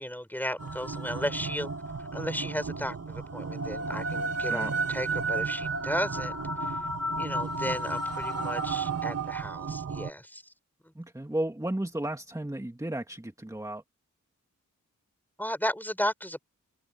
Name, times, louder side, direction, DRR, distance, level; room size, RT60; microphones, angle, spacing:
voice 1, 0.0-1.7 2.1-6.3 6.6-6.8 7.2-10.4 15.4-16.5, equal, 5° left, 5.9 m, -34 dB
sound 1, 0.6-10.1, right 3 dB, 50° right, 2.4 m, -32 dB
voice 2, 11.0-13.8, right 1 dB, 10° right, 2.4 m, -33 dB
open air
cardioid pair, 50°, 32 cm